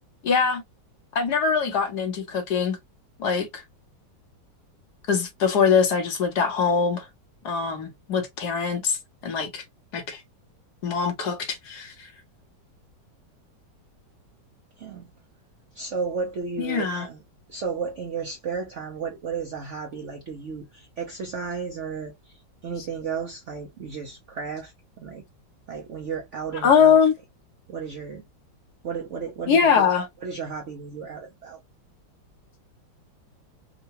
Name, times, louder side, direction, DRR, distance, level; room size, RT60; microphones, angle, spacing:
voice 1, 0.2-0.6 1.1-2.8 3.2-3.6 5.1-7.0 7.4-9.0 9.2-9.6 9.9-10.2 10.8-11.9 16.6-17.1 26.6-27.1 29.5-30.1, left 6 dB, 65° left, 1.4 m, -22 dB
voice 2, 14.8-15.1 15.7-17.2 17.5-25.2 25.7-27.0 27.7-28.2 28.8-29.9 30.2-31.6, right 5 dB, 65° right, 0.7 m, -33 dB
3.8 x 2.2 x 2.8 m
omnidirectional pair, 2.0 m